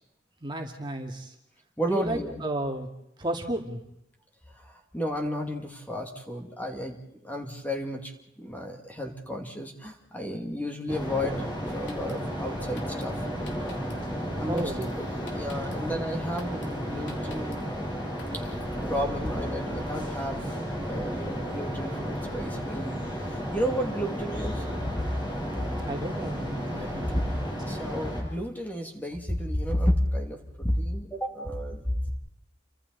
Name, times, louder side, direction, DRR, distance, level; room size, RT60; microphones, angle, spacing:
voice 1, 0.4-1.3 1.9-2.9 3.2-3.8 14.5-15.0 15.6-15.7 25.8-27.4, right 1 dB, 25° right, 2 dB, 2.3 m, -33 dB
voice 2, 1.8-2.3 4.9-7.0 7.2-8.1 8.4-13.1 14.4-17.7 18.9-20.5 20.8-22.9 23.5-24.6 26.8-27.2 27.6-32.1, equal, 10° left, 2 dB, 2.6 m, -32 dB
sound 1, 10.9-28.2, equal, 25° left, 7.2 m, -33 dB
Drum kit, 11.7-18.9, left 1 dB, 80° left, 3.1 m, -47 dB
30.0 x 25.0 x 4.1 m, 0.79 s
head